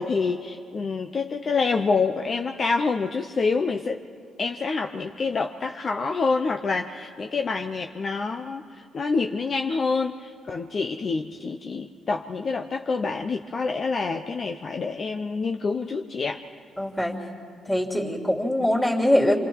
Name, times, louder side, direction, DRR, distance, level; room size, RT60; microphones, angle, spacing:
voice 1, 0.0-4.0 4.4-16.4, left 4 dB, 45° left, 4 dB, 0.8 m, -27 dB
voice 2, 16.8-17.2 17.6-19.4, left 1 dB, 10° left, 0 dB, 3.1 m, -22 dB
29.5 x 26.0 x 4.8 m, 2.2 s
cardioid pair, 90°, 0 cm